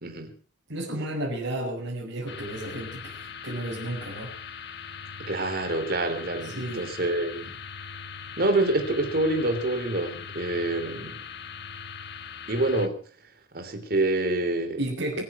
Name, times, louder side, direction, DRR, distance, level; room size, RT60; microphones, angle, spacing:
voice 1, 0.0-0.3 5.3-7.5 8.4-11.2 12.5-13.0 13.5-14.8 15.1-15.2, right 2 dB, 50° right, 6 dB, 3.5 m, -26 dB
voice 2, 0.7-4.3 6.4-6.9 14.8-15.2, right 1 dB, 90° right, -5 dB, 5.6 m, -32 dB
sound 1, 2.3-12.9, left 6 dB, 60° left, 1.5 m, -40 dB
24.5 x 9.3 x 6.1 m, 0.42 s
head